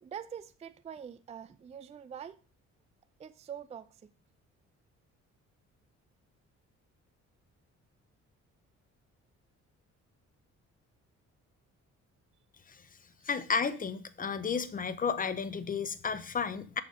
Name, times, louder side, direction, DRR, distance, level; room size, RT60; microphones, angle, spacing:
voice 1, 0.0-2.4 3.2-4.1, right 8 dB, 20° right, 0.4 m, -44 dB
voice 2, 13.3-16.8, left 6 dB, 30° left, 0.6 m, -32 dB
6.6 x 4.3 x 4.9 m
cardioid pair, 90°, 30 cm